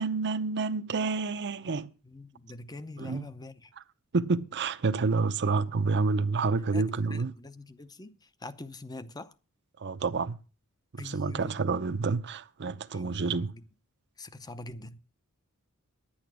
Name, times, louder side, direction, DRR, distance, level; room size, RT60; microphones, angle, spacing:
voice 1, 0.0-1.9 3.0-3.3 4.1-7.3 9.8-10.4 10.9-13.5, right 4 dB, 50° right, 0.7 m, -29 dB
voice 2, 2.0-3.7 6.0-9.3 11.0-11.8 12.9-13.6 14.2-15.0, left 2 dB, 20° left, 0.7 m, -45 dB
10.5 x 8.8 x 6.0 m
head